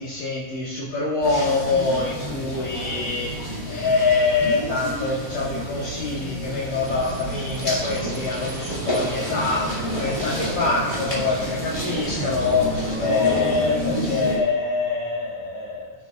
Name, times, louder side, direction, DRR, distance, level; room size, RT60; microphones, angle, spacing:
voice 1, 0.0-15.9, left 4 dB, 55° left, -9 dB, 2.8 m, -25 dB
sound 1, 1.2-14.4, equal, 10° left, 2.1 m, -29 dB
sound 2, 6.8-12.9, right 5 dB, 85° right, 1.3 m, -37 dB
18.0 x 7.2 x 2.5 m, 1.2 s
omnidirectional pair, 4.0 m